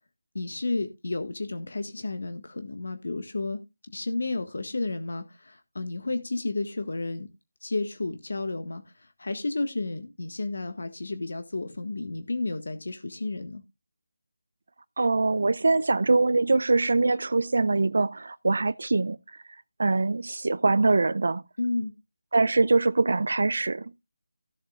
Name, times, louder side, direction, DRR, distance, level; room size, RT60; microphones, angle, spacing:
voice 1, 0.3-3.6 3.9-7.3 7.6-13.6 21.6-21.9, left 2 dB, 70° left, 1.6 m, -32 dB
voice 2, 15.0-19.2 19.8-21.4 22.3-23.9, right 3 dB, 65° right, 0.5 m, -23 dB
16.5 x 7.4 x 2.4 m
figure-of-eight pair, 165°, 0 cm